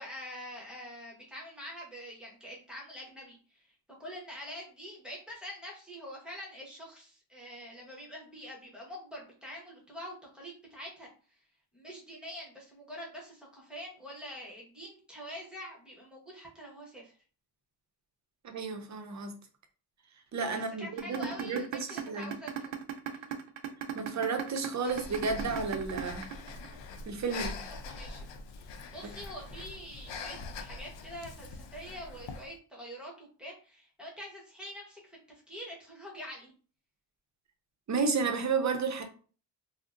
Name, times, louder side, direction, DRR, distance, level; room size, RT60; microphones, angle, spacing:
voice 1, 0.0-3.7 4.0-11.4 11.7-17.2 20.5-22.7 23.1-23.4 27.3-28.3 28.5-35.2 35.5-36.5, equal, ahead, 1.0 m, -45 dB
voice 2, 18.4-19.4 20.3-22.3 23.9-26.3 27.1-27.5 37.9-39.0, right 4 dB, 40° right, 0.6 m, -32 dB
sound 1, 21.0-27.0, right 11 dB, 90° right, 0.6 m, -36 dB
Breathing, 24.8-32.5, left 4 dB, 70° left, 0.6 m, -43 dB
3.6 x 2.1 x 2.5 m
cardioid pair, 120°, 45 cm